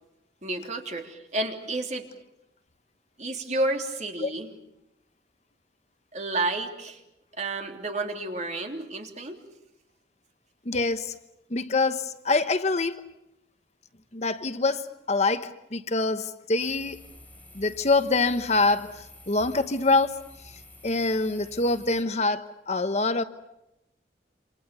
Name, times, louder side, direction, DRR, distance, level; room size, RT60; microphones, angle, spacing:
voice 1, 0.4-2.1 3.2-4.5 6.1-7.0 7.4-9.4, right 2 dB, 40° right, 3.3 m, -31 dB
voice 2, 10.6-11.1 11.5-13.0 14.1-17.0 17.5-20.2 20.8-23.2, left 3 dB, 40° left, 1.1 m, -25 dB
sound 1, 16.6-22.0, left 2 dB, 10° left, 5.2 m, -50 dB
28.5 x 27.0 x 6.9 m
head